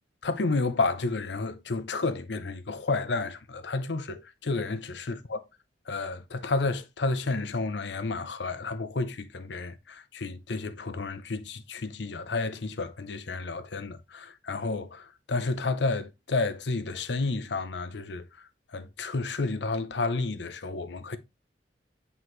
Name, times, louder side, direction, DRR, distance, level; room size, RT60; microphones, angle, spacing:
voice 1, 0.2-5.4 5.9-18.3 18.7-21.2, left 3 dB, 70° left, 0.7 m, -31 dB
7.8 x 4.0 x 3.1 m
head